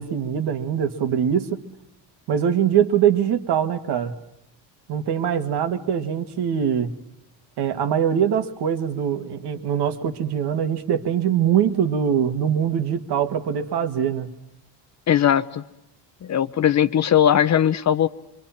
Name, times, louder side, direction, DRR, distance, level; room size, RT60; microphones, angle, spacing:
voice 1, 0.0-1.6 2.3-4.1 4.9-6.9 7.6-14.3, right 8 dB, 60° right, 8 dB, 2.0 m, -22 dB
voice 2, 15.1-15.6 16.2-18.1, left 9 dB, 40° left, 14 dB, 0.8 m, -19 dB
25.5 x 25.0 x 5.8 m, 0.86 s
cardioid pair, 145°, 44 cm